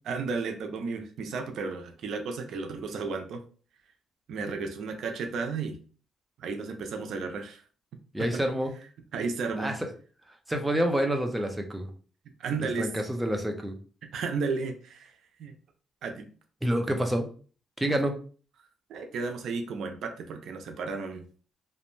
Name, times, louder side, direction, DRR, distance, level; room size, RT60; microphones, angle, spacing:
voice 1, 0.1-3.4 4.3-5.8 6.4-7.6 8.2-8.4 9.1-9.7 12.4-12.9 14.0-15.1 15.4-15.5 16.0-16.3 18.9-21.3, right 4 dB, 70° right, 5 dB, 0.4 m, -33 dB
voice 2, 8.1-8.7 9.6-9.7 10.5-11.9 12.8-13.7 16.6-17.3 17.8-18.1, right 1 dB, 10° right, 3 dB, 0.6 m, -27 dB
2.5 x 2.1 x 3.1 m, 0.40 s
cardioid pair, 90°, 0 cm